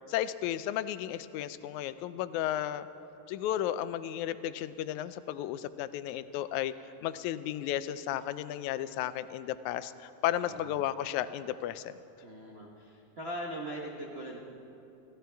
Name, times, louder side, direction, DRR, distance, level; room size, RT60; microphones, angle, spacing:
voice 1, 0.1-2.9 3.3-6.7 7.0-11.9, left 12 dB, 85° left, 13 dB, 2.0 m, -33 dB
voice 2, 10.4-10.7 12.2-14.4, right 1 dB, 60° right, -2 dB, 0.6 m, -40 dB
26.5 x 15.0 x 3.4 m, 2.8 s
omnidirectional pair, 3.3 m